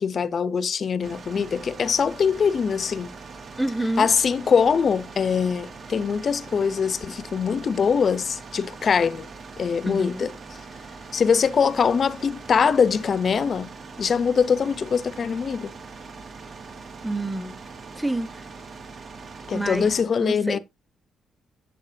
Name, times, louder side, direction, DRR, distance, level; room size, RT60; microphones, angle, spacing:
voice 1, 0.0-3.1 4.0-9.3 9.6-10.3 11.1-13.7 14.0-15.7 19.5-20.6, left 6 dB, 45° left, 0.8 m, -23 dB
sound 1, 1.0-20.0, right 4 dB, 50° right, 3.1 m, -42 dB
voice 2, 3.6-4.1 9.8-10.3 17.0-17.6 18.0-18.4 19.5-19.9 20.2-20.6, right 1 dB, ahead, 1.1 m, -28 dB
10.5 x 9.0 x 2.8 m
cardioid pair, 90°, 0 cm